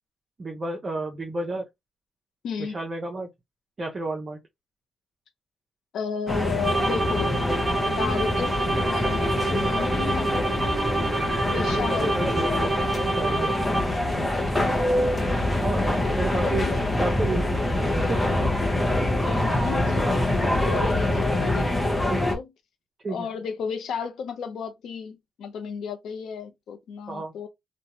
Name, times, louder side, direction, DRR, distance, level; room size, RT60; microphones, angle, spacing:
voice 1, 0.4-1.6 2.6-3.3 3.8-4.4 11.7-13.8 15.6-15.9 16.2-16.7 17.0-18.2 22.1-22.2 23.0-23.3 27.1-27.3, right 2 dB, 35° right, 0.6 m, -31 dB
voice 2, 2.4-2.8 5.9-7.3 8.0-10.4 11.3-12.2 14.3-14.8 15.7-16.8 18.9-22.5 23.1-27.5, left 6 dB, 80° left, 0.6 m, -33 dB
sound 1, 6.3-22.4, left 1 dB, 10° left, 0.8 m, -25 dB
sound 2, 6.6-14.1, right 3 dB, 20° right, 0.9 m, -28 dB
2.5 x 2.2 x 2.9 m
cardioid pair, 90°, 0 cm